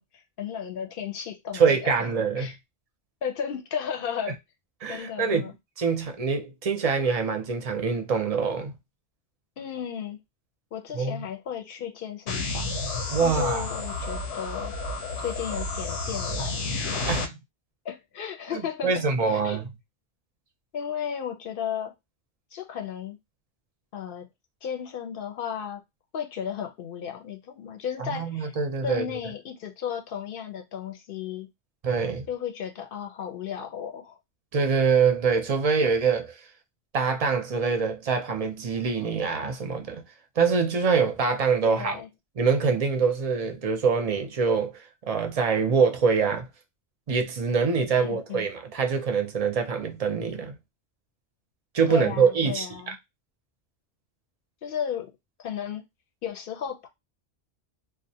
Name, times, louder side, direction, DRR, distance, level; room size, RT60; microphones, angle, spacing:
voice 1, 0.0-2.1 2.4-2.6 3.2-4.4 4.9-5.5 9.6-10.2 10.7-12.7 13.2-14.7 15.2-17.0 17.8-19.6 20.7-21.9 22.5-23.2 23.9-24.3 24.6-25.8 26.1-28.5 28.8-31.5 32.3-34.2 41.6-42.1 48.0-48.5 51.9-53.0 54.6-55.1 55.4-55.8 56.2-56.9, left 8 dB, 60° left, 0.7 m, -34 dB
voice 2, 1.5-2.5 4.8-5.5 5.8-8.7 10.9-11.2 13.1-13.7 17.1-17.4 18.5-19.6 28.0-29.0 31.8-32.3 34.5-36.4 36.9-40.0 40.4-42.0 42.4-46.5 47.1-50.6 51.7-52.7, right 5 dB, 45° right, 0.5 m, -24 dB
sound 1, 12.3-17.3, left 3 dB, 85° left, 0.9 m, -31 dB
2.4 x 2.1 x 2.7 m
omnidirectional pair, 1.1 m